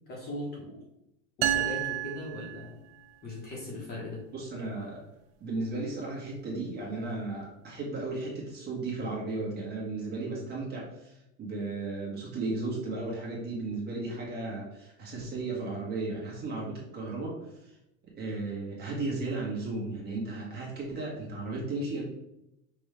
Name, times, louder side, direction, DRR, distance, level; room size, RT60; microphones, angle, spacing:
voice 1, 0.1-0.8 1.4-2.8 3.2-4.2, left 1 dB, 25° left, -3 dB, 1.2 m, -39 dB
sound 1, 1.4-3.2, right 12 dB, 55° right, 0.5 m, -31 dB
voice 2, 4.3-5.0 5.4-17.7 18.1-22.0, right 3 dB, 25° right, -4 dB, 1.5 m, -35 dB
5.4 x 2.6 x 3.4 m, 0.84 s
supercardioid pair, 145°, 37 cm